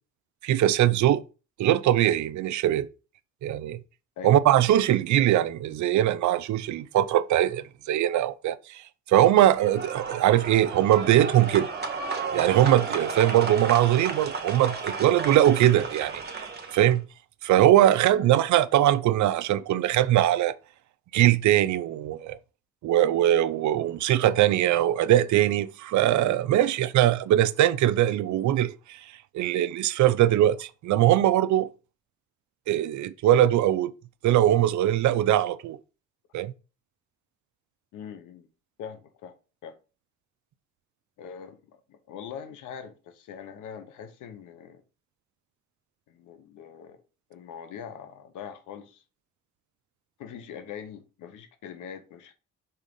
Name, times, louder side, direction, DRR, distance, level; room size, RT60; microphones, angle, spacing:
voice 1, 0.4-1.2 1.6-2.9 3.4-3.8 4.2-11.7 12.3-17.1 17.4-20.5 21.1-22.4 22.8-29.0 29.3-31.7 32.7-33.9 34.2-35.8 36.3-36.5, right 12 dB, 70° right, 0.6 m, -21 dB
sound 1, 9.6-16.9, right 4 dB, 35° right, 1.5 m, -33 dB
voice 2, 37.9-38.5 38.8-39.3 39.6-39.7 41.2-41.6 41.9-44.8 46.1-47.0 47.3-49.0 50.2-52.3, left 7 dB, 85° left, 1.0 m, -42 dB
5.7 x 3.6 x 5.3 m
cardioid pair, 90°, 30 cm